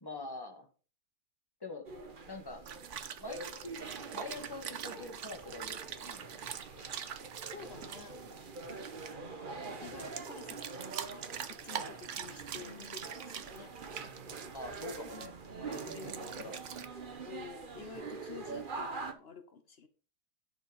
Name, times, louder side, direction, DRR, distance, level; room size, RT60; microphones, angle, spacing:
voice 1, 0.0-0.7 1.6-1.9 2.3-2.6 3.1-3.8 4.1-6.3 14.5-16.6, left 2 dB, 10° left, 4 dB, 1.5 m, -45 dB
sound 1, 1.8-19.1, right 4 dB, 35° right, 0.8 m, -45 dB
sound 2, 2.6-9.1 9.6-15.3 15.7-16.9, right 8 dB, 70° right, 0.7 m, -44 dB
sound 3, 5.5-14.9, equal, 50° left, 4.3 m, -63 dB
voice 2, 7.5-8.2 9.8-11.0 11.4-13.7 15.9-16.4 17.3-19.9, left 6 dB, 80° left, 9 dB, 0.5 m, -50 dB
10.5 x 5.9 x 5.1 m, 0.38 s
omnidirectional pair, 2.3 m